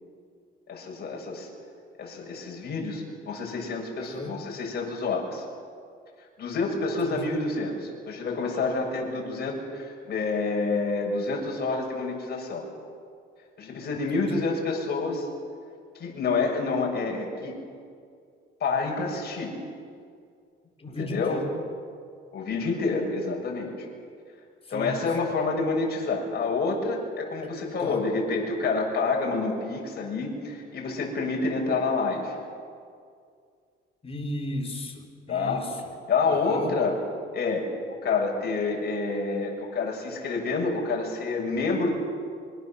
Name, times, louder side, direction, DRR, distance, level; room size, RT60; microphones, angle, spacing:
voice 1, 0.7-1.5 2.0-5.4 6.4-12.7 13.6-15.3 16.0-17.6 18.6-19.6 20.9-21.4 22.3-23.7 24.7-32.4 35.3-35.7 36.1-37.0 37.3-42.0, left 3 dB, 50° left, 0 dB, 7.1 m, -28 dB
voice 2, 4.0-4.4 7.0-7.2 14.1-14.4 20.8-21.5 24.7-25.1 27.8-28.0 34.0-35.8 36.2-36.7, left 1 dB, 25° left, 2 dB, 4.4 m, -35 dB
25.5 x 23.5 x 7.6 m, 2.2 s
cardioid pair, 110°, 21 cm